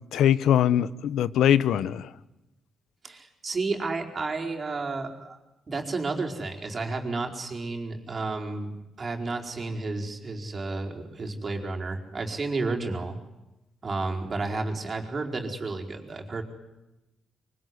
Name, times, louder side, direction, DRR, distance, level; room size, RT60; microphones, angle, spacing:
voice 1, 0.1-2.1, left 10 dB, 85° left, 17 dB, 1.1 m, -22 dB
voice 2, 3.0-5.4 5.7-13.2 13.8-16.4, right 3 dB, 35° right, 2 dB, 4.6 m, -31 dB
25.5 x 24.5 x 9.7 m, 0.97 s
cardioid pair, 120°, 0 cm